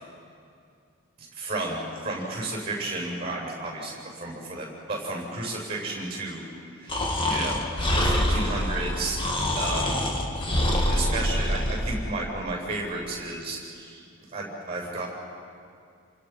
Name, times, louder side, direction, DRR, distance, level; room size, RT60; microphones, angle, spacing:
voice 1, 1.3-6.4 6.8-7.7 7.9-9.2 9.6-10.0 10.9-14.1 14.3-15.1, right 2 dB, 25° right, -1 dB, 7.7 m, -32 dB
Breathing, 6.9-12.0, left 1 dB, 25° left, 2.3 m, -25 dB
28.5 x 27.0 x 6.0 m, 2.4 s
head